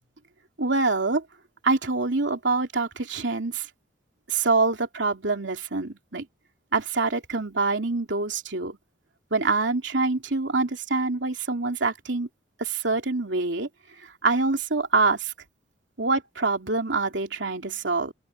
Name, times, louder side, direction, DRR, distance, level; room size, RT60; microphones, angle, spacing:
voice 1, 0.6-1.2 1.6-3.7 4.3-6.3 6.7-8.8 9.3-12.3 12.6-13.7 14.0-15.3 16.0-18.1, right 3 dB, 75° right, 2.9 m, -25 dB
open air
head